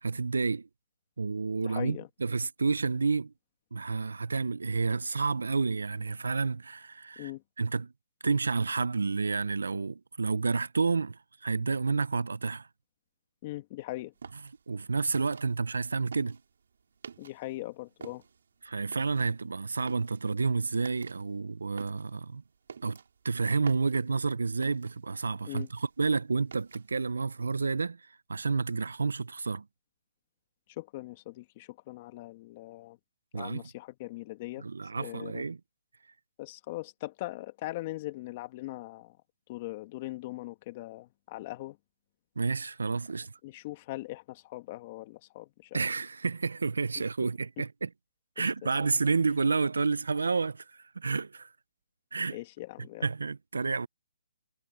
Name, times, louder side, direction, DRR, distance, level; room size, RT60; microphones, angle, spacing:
voice 1, 0.0-0.7 1.2-3.3 3.7-7.3 7.6-7.9 8.2-12.7 14.7-16.4 18.6-22.4 22.8-23.0 23.2-28.0 28.3-29.6 33.3-33.6 34.6-35.6 42.4-43.3 45.7-47.9 48.4-50.6 51.0-51.5 52.1-52.4 53.0-53.9, right 4 dB, 90° right, 0.5 m, -30 dB
voice 2, 1.6-2.1 7.2-7.4 13.4-14.1 17.2-18.2 25.4-25.7 30.8-33.0 33.3-34.6 35.0-35.4 36.4-39.2 39.5-41.8 43.4-45.8 48.4-48.7 52.3-53.1, left 18 dB, 30° left, 1.9 m, -40 dB
sound 1, 14.2-17.6 17.9-25.2 25.4-27.1, right 6 dB, 70° right, 5.2 m, -49 dB
hypercardioid pair, 160°, 0 cm